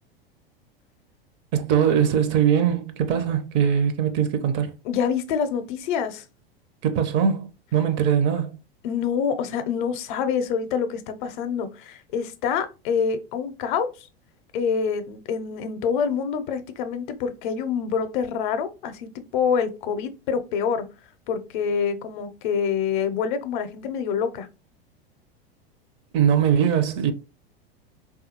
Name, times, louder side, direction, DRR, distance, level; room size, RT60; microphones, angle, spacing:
voice 1, 1.5-4.7 6.8-8.6 26.1-27.1, right 8 dB, 40° right, 0.5 m, -21 dB
voice 2, 4.8-6.2 8.8-14.1 14.5-20.9 21.3-24.5, left 6 dB, 55° left, 0.6 m, -26 dB
3.4 x 2.3 x 2.8 m
hypercardioid pair, 90°, 30 cm